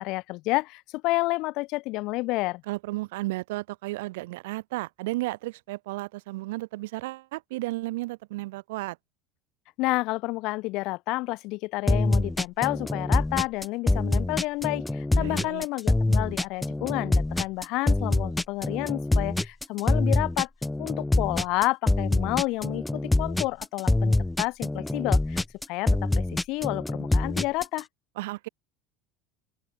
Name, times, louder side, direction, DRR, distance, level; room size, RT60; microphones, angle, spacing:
voice 1, 0.0-2.6 9.8-20.5 20.8-25.4 25.7-27.9, left 22 dB, 60° left, 1.0 m, -30 dB
voice 2, 2.7-9.0 15.1-15.7 28.2-28.5, right 20 dB, 75° right, 0.8 m, -33 dB
sound 1, 11.9-27.8, left 2 dB, 10° left, 0.5 m, -25 dB
open air
hypercardioid pair, 80°, 0 cm